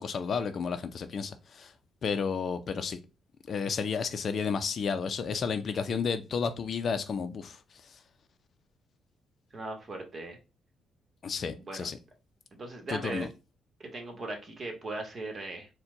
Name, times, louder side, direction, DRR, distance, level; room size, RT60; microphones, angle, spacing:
voice 1, 0.0-1.7 2.0-3.0 3.5-7.6 11.2-12.0 12.9-13.3, left 5 dB, 50° left, 0.5 m, -32 dB
voice 2, 9.5-10.4 11.6-11.9 12.5-13.3 13.8-15.7, right 2 dB, 35° right, 1.3 m, -38 dB
4.4 x 2.2 x 3.8 m
cardioid pair, 90°, 0 cm